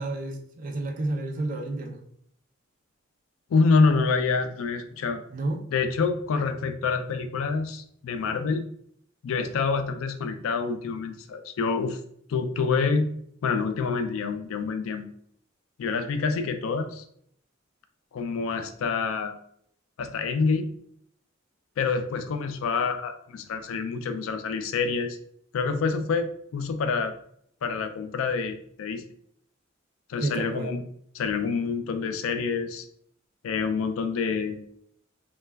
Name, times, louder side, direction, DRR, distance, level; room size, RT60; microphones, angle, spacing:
voice 1, 0.0-2.0 5.3-5.6 30.2-30.7, right 2 dB, 40° right, 2 dB, 0.4 m, -30 dB
voice 2, 3.5-5.2 5.7-8.6 9.2-12.0 12.3-13.1 13.4-15.1 15.8-17.0 18.1-19.3 20.0-20.7 21.8-25.2 25.5-26.3 26.5-27.1 27.6-29.0 30.1-30.8 31.1-32.9 33.4-34.6, left 4 dB, 85° left, 8 dB, 0.3 m, -27 dB
2.2 x 2.2 x 3.3 m, 0.68 s
head